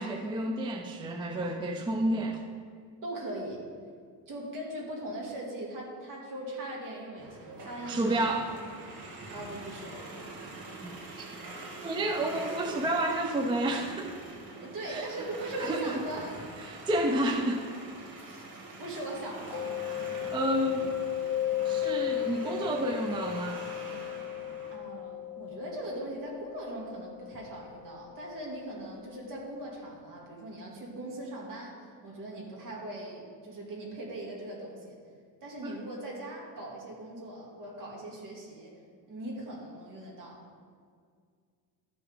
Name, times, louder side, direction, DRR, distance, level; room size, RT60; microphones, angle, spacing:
voice 1, 0.0-2.4 7.9-8.5 10.8-11.4 11.8-14.2 14.8-15.1 15.6-16.0 16.6-17.7 20.3-20.9 21.6-23.6 35.6-35.8, right 1 dB, 15° right, 3 dB, 0.4 m, -30 dB
voice 2, 3.0-3.6 4.3-8.3 9.3-9.9 14.6-16.4 18.0-18.2 18.8-19.7 24.7-31.8 32.0-35.0 35.4-38.7 39.1-40.4, right 1 dB, 50° right, -3 dB, 2.4 m, -40 dB
sound 1, 7.2-24.8, right 2 dB, 65° right, 2.3 m, -44 dB
Mallet percussion, 19.5-29.1, left 12 dB, 40° left, 0.8 m, -35 dB
12.5 x 5.9 x 3.6 m, 2.1 s
cardioid pair, 145°, 40 cm